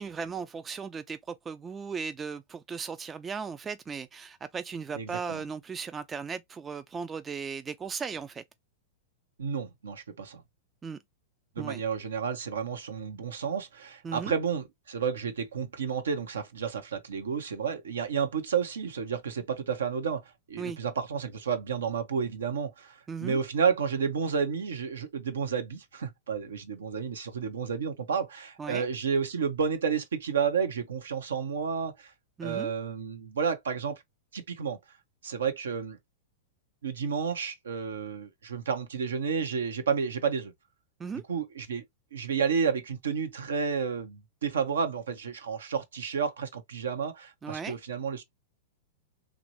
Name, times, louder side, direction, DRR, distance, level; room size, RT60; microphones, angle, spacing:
voice 1, 0.0-8.4 10.8-11.0 11.6-11.8 14.0-14.3 20.6-20.8 23.1-23.4 28.6-28.9 32.4-32.7 41.0-41.2 47.4-47.8, right 5 dB, 20° right, 0.3 m, -37 dB
voice 2, 4.9-5.4 9.4-10.4 11.6-32.1 32.4-34.0 34.3-34.8 35.2-36.0 36.8-40.5 41.3-41.8 42.1-48.2, right 6 dB, 80° right, 0.7 m, -31 dB
3.1 x 2.5 x 2.9 m
hypercardioid pair, 105°, 0 cm